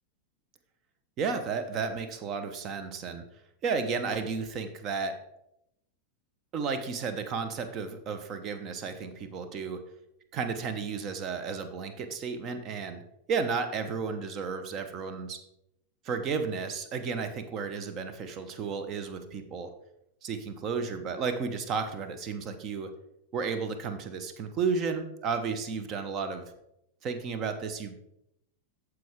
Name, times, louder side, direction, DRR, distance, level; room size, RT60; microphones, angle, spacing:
voice 1, 1.2-3.2 3.6-5.3 6.5-9.9 10.3-13.0 13.3-15.4 16.0-19.8 20.2-22.9 23.3-26.5 27.0-28.0, right 5 dB, 35° right, 9 dB, 1.0 m, -33 dB
14.0 x 4.8 x 3.6 m, 0.82 s
figure-of-eight pair, 90°, 0 cm